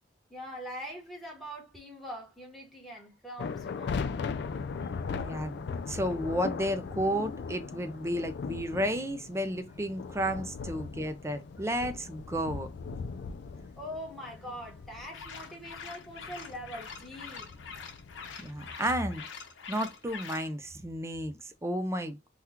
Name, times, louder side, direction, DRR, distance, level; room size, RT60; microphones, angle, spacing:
voice 1, 0.3-4.0 13.8-17.5, equal, ahead, 1.1 m, -43 dB
sound 1, 3.4-18.7, left 5 dB, 60° left, 0.3 m, -39 dB
voice 2, 5.2-12.7 18.4-19.2 19.7-22.3, equal, 15° right, 0.4 m, -32 dB
sound 2, 15.1-20.5, left 5 dB, 85° left, 0.8 m, -45 dB
3.5 x 2.3 x 2.8 m
head